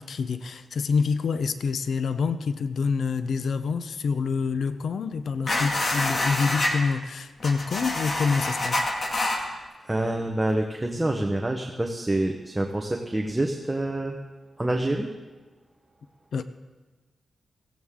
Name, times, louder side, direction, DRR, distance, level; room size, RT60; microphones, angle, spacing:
voice 1, 0.0-8.8 16.3-16.4, left 5 dB, 75° left, 11 dB, 0.6 m, -27 dB
sound 1, 5.5-6.7 7.4-9.4, left 2 dB, 40° left, 2.1 m, -26 dB
voice 2, 9.8-14.2 14.6-15.1, right 1 dB, 15° right, 2 dB, 0.9 m, -27 dB
16.5 x 16.5 x 3.7 m, 1.2 s
wide cardioid pair, 120°, 0 cm